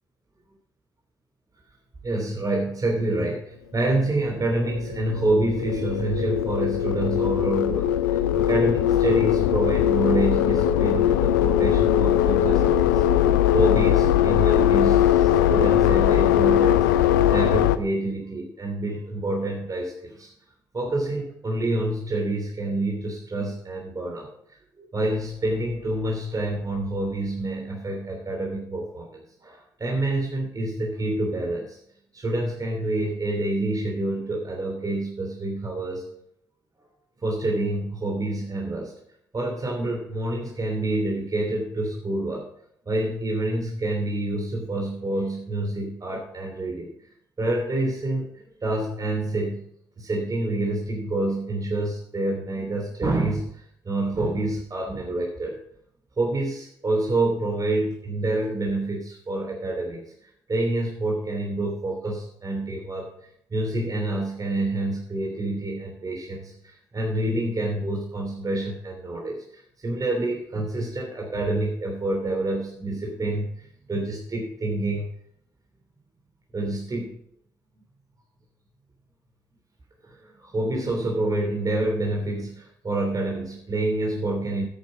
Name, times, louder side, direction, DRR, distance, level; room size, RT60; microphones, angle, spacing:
voice 1, 2.0-13.0 13.5-20.3 20.7-24.3 24.8-31.8 32.1-36.0 37.2-38.9 39.3-42.5 42.8-46.9 47.4-49.6 50.0-55.6 56.2-63.1 63.5-75.1 76.5-77.2 80.0-84.6, right 2 dB, 40° right, 0 dB, 3.0 m, -27 dB
sound 1, 4.1-17.8, left 11 dB, 90° left, 0.5 m, -20 dB
10.5 x 8.9 x 5.2 m, 0.70 s
hypercardioid pair, 45°, 10 cm